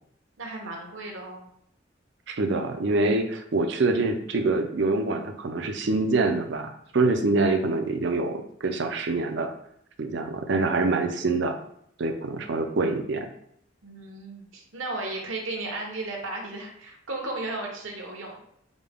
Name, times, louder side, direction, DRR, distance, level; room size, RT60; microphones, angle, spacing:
voice 1, 0.4-1.5 13.8-18.4, right 2 dB, 80° right, 0 dB, 1.0 m, -35 dB
voice 2, 2.3-9.5 10.0-11.6 12.0-13.3, right 3 dB, 60° right, 6 dB, 0.5 m, -25 dB
5.1 x 2.2 x 3.5 m, 0.70 s
head